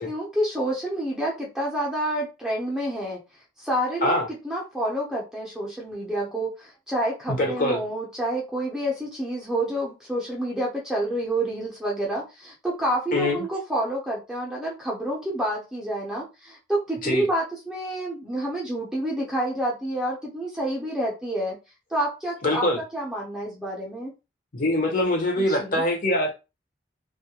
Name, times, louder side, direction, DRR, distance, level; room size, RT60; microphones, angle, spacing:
voice 1, 0.0-3.2 3.6-4.2 4.4-21.6 21.9-24.1 25.4-25.8, right 1 dB, 5° right, 0.6 m, -28 dB
voice 2, 7.3-7.8 13.1-13.4 17.0-17.3 22.4-22.8 24.5-26.3, left 1 dB, 45° left, 0.7 m, -23 dB
2.3 x 2.1 x 2.8 m
head